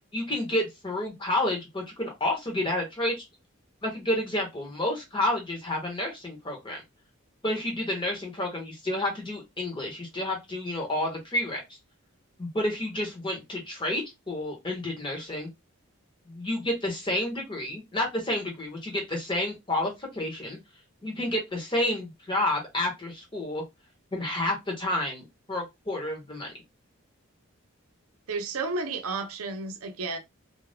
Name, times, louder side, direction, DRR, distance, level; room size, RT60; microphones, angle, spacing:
voice 1, 0.1-3.1 3.8-6.8 7.4-11.6 12.4-15.5 16.3-20.6 21.0-23.6 24.1-26.5, left 1 dB, 20° left, 1.0 m, -30 dB
voice 2, 28.3-30.2, right 3 dB, 85° right, 0.6 m, -32 dB
2.6 x 2.3 x 3.4 m
head